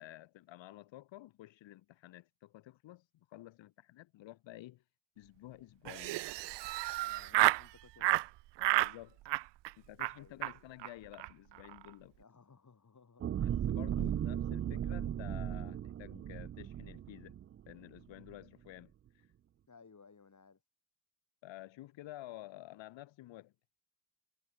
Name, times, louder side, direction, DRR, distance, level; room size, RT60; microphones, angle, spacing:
voice 1, 0.0-4.8 5.2-6.2 8.8-9.2 9.8-12.2 13.4-17.4 17.7-19.3 21.4-23.5, left 15 dB, 75° left, 2.3 m, -51 dB
Laughter, 5.9-7.7 8.0-8.3 8.6-8.9 9.3-9.7 10.0-10.1 10.4-10.5 10.8-10.9 11.1-11.3 11.6-11.9, right 18 dB, 65° right, 0.7 m, -31 dB
voice 2, 7.0-8.2 10.1-10.7 12.1-13.3 13.9-14.1 19.7-20.6, left 5 dB, 40° left, 6.5 m, -61 dB
sound 1, 13.2-17.7 18.2-18.3, right 10 dB, 30° right, 0.4 m, -36 dB
hypercardioid pair, 45°, 45 cm